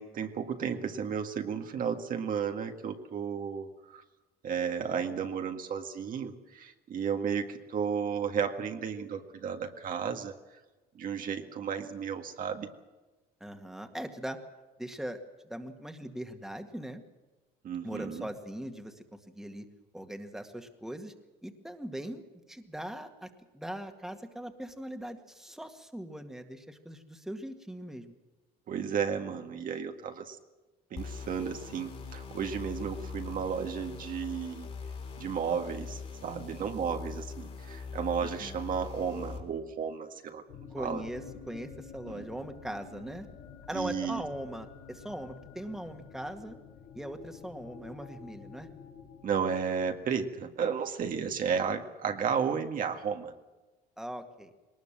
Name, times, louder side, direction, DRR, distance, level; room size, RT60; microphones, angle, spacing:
voice 1, 0.0-4.0 4.4-10.3 11.0-12.7 17.6-18.3 28.7-30.4 30.9-34.7 35.2-40.4 40.8-41.0 42.1-42.2 43.7-44.2 49.2-53.3, right 7 dB, 55° right, 4 dB, 1.9 m, -33 dB
voice 2, 13.4-14.4 14.8-15.2 15.4-17.0 17.8-19.0 19.3-19.7 19.9-21.1 21.4-28.1 38.2-38.6 40.7-43.3 43.7-46.6 46.9-48.7 54.0-54.5, right 1 dB, ahead, 5 dB, 2.0 m, -40 dB
sound 1, 31.0-39.4, left 5 dB, 40° left, 3.6 m, -42 dB
sound 2, 40.5-50.3, left 6 dB, 85° left, 4.3 m, -49 dB
21.0 x 19.5 x 7.5 m, 1.2 s
cardioid pair, 110°, 17 cm